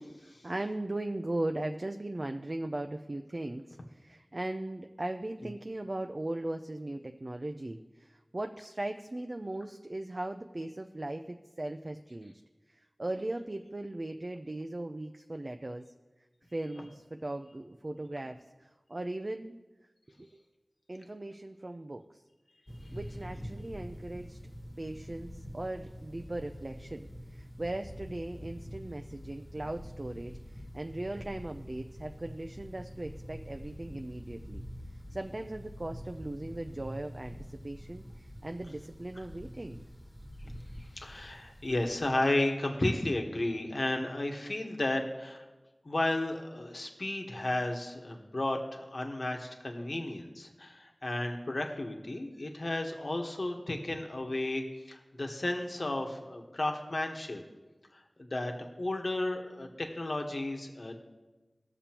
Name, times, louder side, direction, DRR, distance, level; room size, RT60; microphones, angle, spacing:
voice 1, 0.2-12.3 12.7-15.8 16.5-19.6 20.2-20.3 20.9-22.2 22.9-24.4 24.8-34.6 35.1-39.8, right 1 dB, 45° right, 6 dB, 0.5 m, -38 dB
sound 1, 22.7-42.1, equal, 25° left, 1.4 m, -46 dB
voice 2, 40.8-45.4 45.8-57.4 57.9-61.0, left 1 dB, 60° left, 3 dB, 1.2 m, -33 dB
19.5 x 6.9 x 3.0 m, 1.2 s
wide cardioid pair, 55°, 0 cm